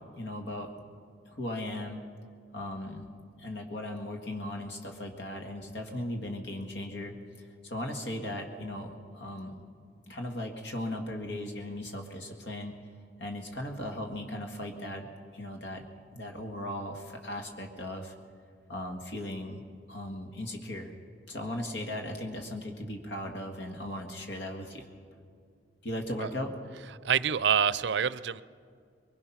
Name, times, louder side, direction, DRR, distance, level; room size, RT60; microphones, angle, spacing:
voice 1, 0.2-0.7 1.3-2.0 2.5-3.0 3.4-9.6 10.1-12.7 13.2-15.8 16.1-18.1 18.7-19.6 19.9-20.9 21.3-24.9 25.8-26.5, left 1 dB, 70° left, 3 dB, 1.8 m, -37 dB
voice 2, 27.0-28.4, right 7 dB, 70° right, 17 dB, 0.5 m, -26 dB
22.5 x 21.0 x 5.8 m, 2.2 s
head